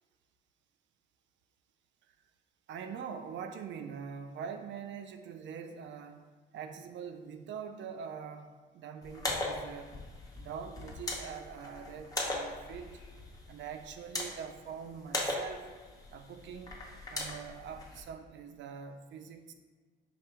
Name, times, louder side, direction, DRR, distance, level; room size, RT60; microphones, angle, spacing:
voice 1, 2.7-6.2 6.5-9.9 10.4-12.9 13.5-15.7 16.1-16.8 17.1-19.5, right 7 dB, 65° right, 7 dB, 0.4 m, -43 dB
sound 1, 9.0-18.0, left 1 dB, 20° left, 0.9 m, -39 dB
5.1 x 2.2 x 4.3 m, 1.4 s
cardioid pair, 90°, 20 cm